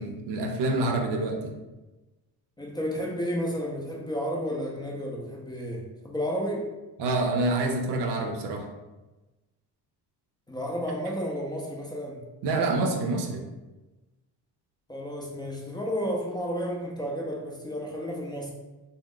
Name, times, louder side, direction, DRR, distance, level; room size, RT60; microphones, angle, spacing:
voice 1, 0.0-1.5 7.0-8.7 11.1-11.2 12.4-13.5, right 2 dB, 75° right, 4 dB, 0.6 m, -27 dB
voice 2, 2.6-6.7 10.5-12.2 14.9-18.5, equal, 10° left, -3 dB, 0.4 m, -32 dB
2.3 x 2.0 x 3.6 m, 1.1 s
cardioid pair, 100°, 41 cm